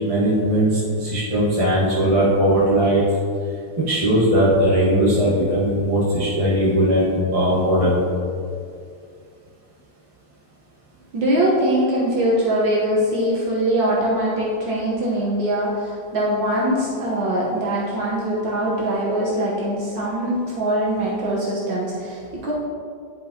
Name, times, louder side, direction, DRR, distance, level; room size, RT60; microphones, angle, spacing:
voice 1, 0.0-3.0 3.9-8.0, equal, 20° right, -9 dB, 1.1 m, -19 dB
voice 2, 11.1-22.5, right 1 dB, 65° right, -5 dB, 1.7 m, -22 dB
10.5 x 5.3 x 2.8 m, 2.3 s
omnidirectional pair, 2.2 m